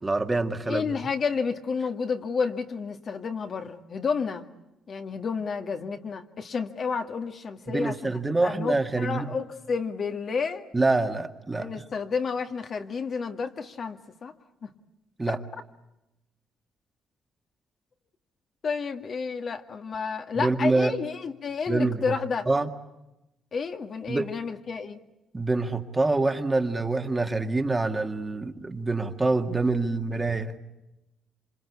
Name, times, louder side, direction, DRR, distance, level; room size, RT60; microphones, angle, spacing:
voice 1, 0.0-1.0 7.7-9.3 10.7-11.7 15.2-15.4 20.3-20.9 21.7-22.2 22.5-22.7 24.1-24.3 25.3-30.5, right 3 dB, 20° right, 5 dB, 2.0 m, -26 dB
voice 2, 0.7-4.5 4.9-10.7 11.5-14.3 14.6-14.7 18.6-22.5 23.5-25.0, left 5 dB, 50° left, 5 dB, 2.0 m, -31 dB
27.0 x 25.5 x 8.5 m, 0.92 s
cardioid pair, 90°, 0 cm